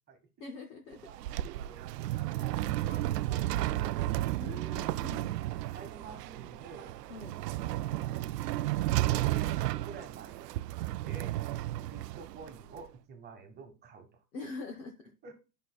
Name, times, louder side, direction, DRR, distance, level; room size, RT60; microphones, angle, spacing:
voice 1, 0.4-1.0 4.4-5.4 7.1-7.3 14.3-14.9, left 3 dB, 15° left, 2 dB, 0.4 m, -43 dB
sound 1, 0.9-12.8, right 15 dB, 75° right, 0.5 m, -33 dB
voice 2, 1.0-4.0 5.5-7.0 7.6-8.2 9.1-10.7 11.1-11.3 11.8-14.2 15.2-15.3, right 4 dB, 20° right, 6 dB, 1.3 m, -50 dB
9.8 x 5.7 x 2.3 m, 0.30 s
hypercardioid pair, 135°, 49 cm